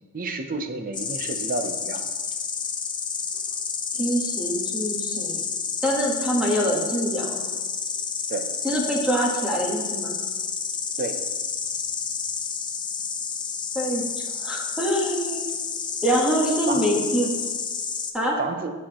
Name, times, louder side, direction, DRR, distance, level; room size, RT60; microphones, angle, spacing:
voice 1, 0.1-2.0 8.3-8.4 11.0-11.2 16.7-16.8 18.4-18.7, right 3 dB, 40° right, 7 dB, 0.6 m, -30 dB
Insect, 0.9-18.1, left 6 dB, 20° left, 0.5 m, -30 dB
voice 2, 4.0-5.4 5.8-7.4 8.6-10.2 13.7-14.0 14.4-15.4 16.0-17.3 18.1-18.4, equal, 5° right, -3 dB, 1.3 m, -25 dB
8.7 x 5.6 x 3.0 m, 1.4 s
head